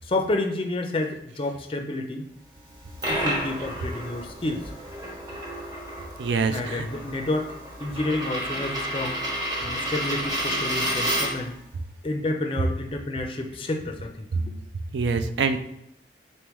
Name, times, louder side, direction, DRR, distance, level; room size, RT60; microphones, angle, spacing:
voice 1, 0.0-2.3 3.1-4.6 6.5-7.5 7.8-9.2 9.6-11.6 12.0-14.6, left 2 dB, 30° left, 3 dB, 0.4 m, -29 dB
Coin (dropping), 2.7-11.5, equal, 20° right, 0.9 m, -31 dB
voice 2, 6.2-6.9 14.9-15.6, right 4 dB, 80° right, 10 dB, 0.4 m, -25 dB
4.2 x 3.5 x 3.0 m, 0.80 s
head